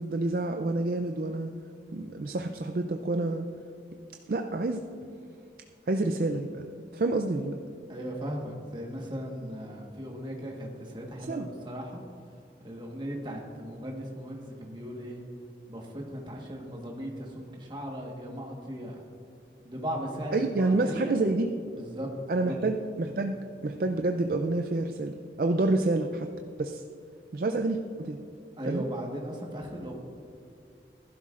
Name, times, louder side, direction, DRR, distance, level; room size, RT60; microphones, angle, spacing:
voice 1, 0.0-1.5 1.9-3.5 4.3-4.8 5.9-7.6 11.2-11.5 20.3-21.5 22.3-23.4 23.6-26.3 26.6-26.8 27.3-28.2 28.7-28.8, right 2 dB, 55° right, 5 dB, 0.4 m, -28 dB
voice 2, 7.9-12.0 12.6-15.2 15.7-19.0 19.6-21.1 21.7-22.1 22.4-22.6 28.6-29.9, equal, 25° right, 0 dB, 1.4 m, -37 dB
14.5 x 12.0 x 2.5 m, 2.4 s
head